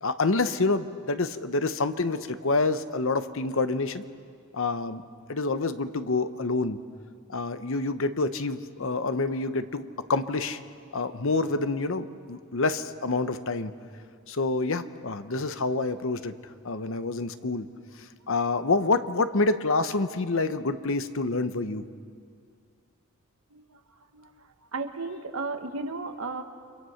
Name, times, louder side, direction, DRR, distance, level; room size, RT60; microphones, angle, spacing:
voice 1, 0.0-4.0 4.5-5.0 5.3-6.8 7.3-10.6 10.9-13.7 14.3-16.3 16.6-17.7 18.3-21.8, left 3 dB, 60° left, 11 dB, 0.9 m, -27 dB
voice 2, 24.1-26.4, right 3 dB, 65° right, 6 dB, 1.5 m, -35 dB
30.0 x 24.5 x 5.8 m, 2.2 s
head